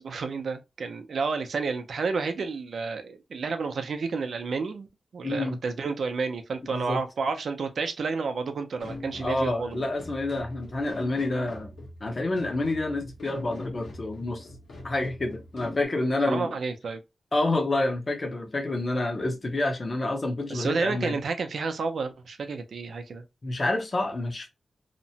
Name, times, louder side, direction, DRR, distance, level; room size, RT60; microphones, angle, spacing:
voice 1, 0.0-4.9 5.1-9.8 16.2-17.0 20.5-23.2, right 4 dB, 65° right, 0.5 m, -30 dB
voice 2, 5.2-5.6 6.7-7.0 9.2-11.7 12.0-14.5 14.8-16.5 17.3-21.2 23.4-24.5, left 2 dB, 35° left, 0.7 m, -28 dB
sound 1, 8.8-15.8, left 2 dB, 85° left, 1.0 m, -42 dB
2.8 x 2.1 x 2.7 m
wide cardioid pair, 160°, 0 cm